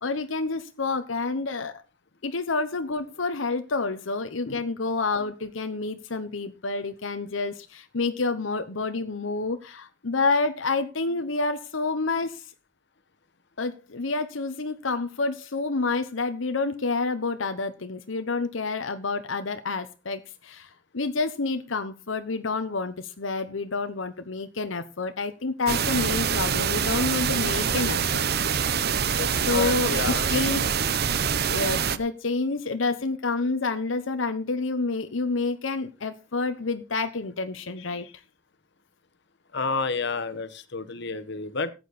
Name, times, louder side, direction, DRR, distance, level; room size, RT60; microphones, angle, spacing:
voice 1, 0.0-1.8 2.2-12.5 13.6-28.2 28.6-28.8 29.5-30.0 30.3-30.7 31.5-38.2, left 3 dB, 85° left, 8 dB, 1.0 m, -28 dB
sound 1, 25.7-32.0, right 7 dB, 55° right, 0.8 m, -25 dB
voice 2, 29.2-30.3 39.5-41.7, left 4 dB, 65° left, 12 dB, 1.3 m, -30 dB
14.5 x 9.0 x 4.2 m, 0.30 s
head